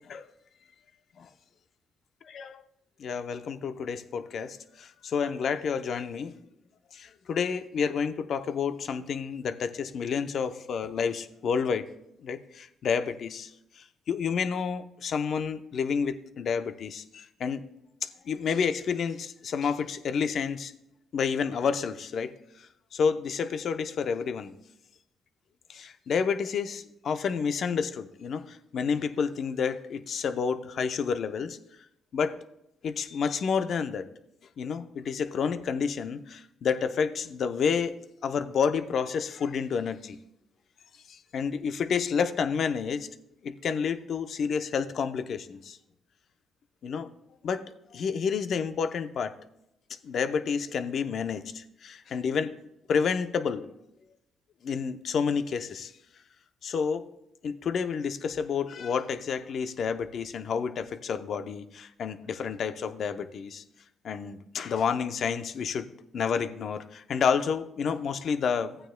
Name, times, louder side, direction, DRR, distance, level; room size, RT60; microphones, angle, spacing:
voice 1, 3.0-6.3 6.9-11.9 12.2-13.5 13.8-17.6 18.0-20.7 21.1-24.5 25.7-31.6 32.1-32.3 32.8-34.1 34.6-38.0 38.2-40.2 41.1-43.1 43.4-45.8 46.8-47.1 47.4-47.6 47.9-49.3 50.0-52.5 52.9-53.7 54.6-55.9 56.6-57.1 57.4-63.6 64.0-68.8, left 6 dB, 60° left, 10 dB, 0.7 m, -30 dB
15.0 x 8.9 x 2.2 m, 0.81 s
cardioid pair, 75°, 0 cm